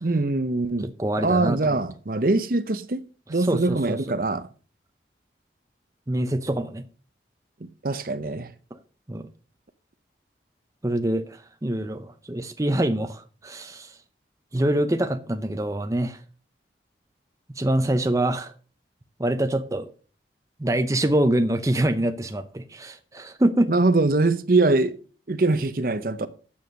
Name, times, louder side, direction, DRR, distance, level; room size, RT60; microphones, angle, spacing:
voice 1, 0.0-0.9 1.2-3.0 3.3-4.5 7.8-8.5 23.7-24.9 25.3-26.3, right 2 dB, 50° right, 0.8 m, -23 dB
voice 2, 1.0-1.6 3.3-4.0 6.1-6.8 9.1-9.3 10.8-14.0 14.5-16.2 17.5-18.5 19.2-19.9 20.6-23.7, right 1 dB, 20° right, 0.6 m, -25 dB
9.4 x 7.1 x 6.2 m
head